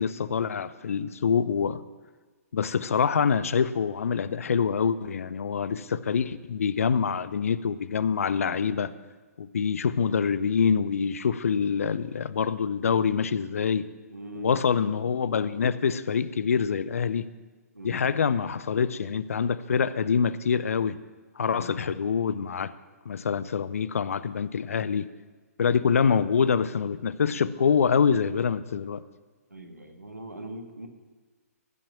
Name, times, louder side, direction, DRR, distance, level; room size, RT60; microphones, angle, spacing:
voice 1, 0.0-1.8 2.5-8.9 9.4-13.9 14.4-17.3 17.8-21.0 21.4-22.7 23.1-25.1 25.6-29.0, left 6 dB, 60° left, 17 dB, 0.5 m, -25 dB
voice 2, 14.1-15.0 17.7-18.1 21.5-21.8 29.5-30.9, right 1 dB, 85° right, 5 dB, 1.6 m, -41 dB
15.5 x 5.9 x 6.9 m, 1.4 s
figure-of-eight pair, 125°, 9 cm